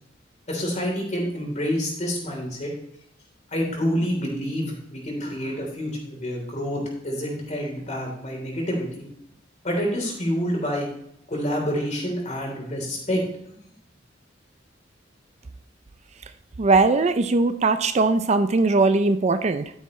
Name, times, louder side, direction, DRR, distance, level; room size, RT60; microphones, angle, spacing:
voice 1, 0.5-2.7 3.5-9.0 9.6-10.9 11.3-13.2, equal, 40° left, 0 dB, 3.6 m, -27 dB
voice 2, 16.6-19.7, right 3 dB, 35° right, 10 dB, 0.4 m, -20 dB
13.0 x 9.1 x 3.2 m, 0.74 s
head